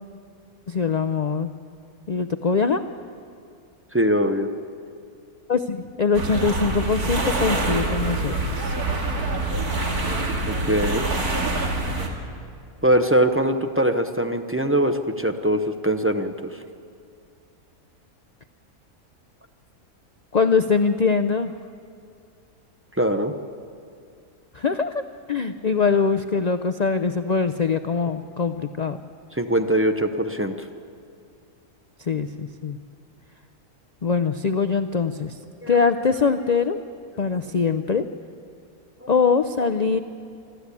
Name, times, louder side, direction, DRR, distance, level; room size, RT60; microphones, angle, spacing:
voice 1, 0.7-1.5 2.1-2.8 5.5-8.8 20.3-21.5 24.5-25.0 25.3-29.0 32.0-32.8 34.0-35.4 35.7-36.8 37.2-38.1 39.1-40.0, left 5 dB, 80° left, 9 dB, 0.3 m, -22 dB
voice 2, 3.9-4.5 10.5-11.1 12.8-16.6 23.0-23.3 29.3-30.7 35.6-35.8 39.0-39.1, right 1 dB, 15° right, 6 dB, 0.5 m, -22 dB
sound 1, 6.1-12.1, right 2 dB, 85° right, 2.6 m, -25 dB
26.0 x 12.5 x 8.4 m, 2.4 s
omnidirectional pair, 1.6 m